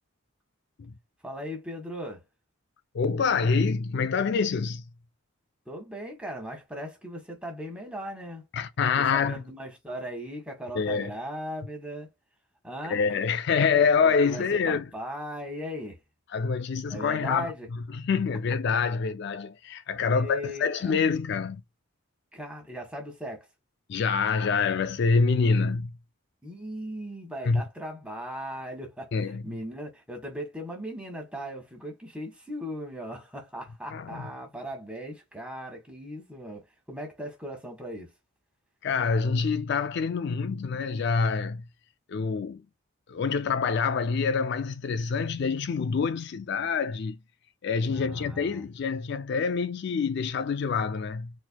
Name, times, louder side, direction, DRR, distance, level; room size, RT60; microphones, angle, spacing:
voice 1, 1.2-2.2 5.6-8.5 9.0-12.1 12.6-13.0 14.0-16.0 16.9-17.7 20.0-20.9 22.3-23.5 26.4-38.1 47.8-48.6, equal, 5° right, 1.6 m, -38 dB
voice 2, 2.9-4.8 8.5-9.4 10.7-11.1 12.8-14.8 16.3-17.5 18.0-21.6 23.9-25.9 27.5-27.6 29.1-29.4 33.9-34.3 38.8-41.6 42.1-42.6 43.1-47.2 47.6-51.3, left 5 dB, 55° left, 0.3 m, -26 dB
4.4 x 3.9 x 2.2 m
head